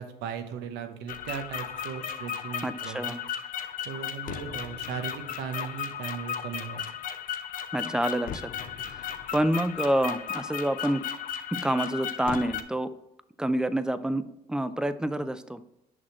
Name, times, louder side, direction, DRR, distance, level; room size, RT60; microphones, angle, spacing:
voice 1, 0.0-3.5 3.8-6.8, right 7 dB, 90° right, 8 dB, 0.9 m, -37 dB
sound 1, 1.1-12.6, left 8 dB, 55° left, 0.6 m, -35 dB
voice 2, 2.6-3.2 7.7-8.5 8.8-9.1 9.3-11.0 11.5-12.9 13.4-14.2 14.5-15.6, right 1 dB, 5° right, 12 dB, 0.4 m, -27 dB
6.3 x 6.0 x 3.0 m, 0.86 s
cardioid pair, 110°, 17 cm